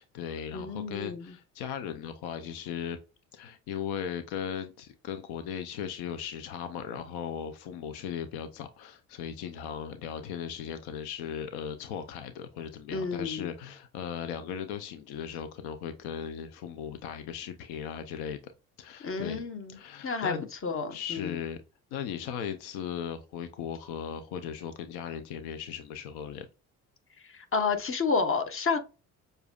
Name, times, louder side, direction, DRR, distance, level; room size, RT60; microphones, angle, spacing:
voice 1, 0.0-3.0 3.3-18.5 18.8-19.4 19.7-20.5 20.9-21.6 21.9-26.5, left 8 dB, 80° left, 0.7 m, -37 dB
voice 2, 0.5-1.3 12.9-13.5 19.0-19.8 20.0-20.4 20.6-21.4 27.2-28.8, left 4 dB, 35° left, 1.2 m, -30 dB
6.8 x 2.6 x 2.3 m
hypercardioid pair, 60°, 38 cm